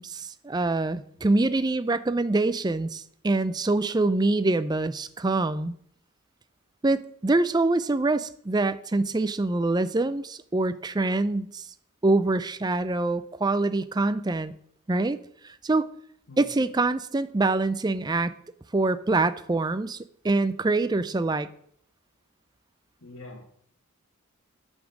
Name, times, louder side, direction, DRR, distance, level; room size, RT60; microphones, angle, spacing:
voice 1, 0.0-5.8 6.8-11.7 12.0-14.5 14.9-15.2 15.4-15.9 16.4-18.3 18.7-21.5, right 2 dB, 20° right, 13 dB, 0.4 m, -25 dB
voice 2, 16.3-16.6 23.0-23.4, left 2 dB, 65° left, 1 dB, 1.4 m, -44 dB
8.2 x 7.2 x 6.4 m, 0.65 s
head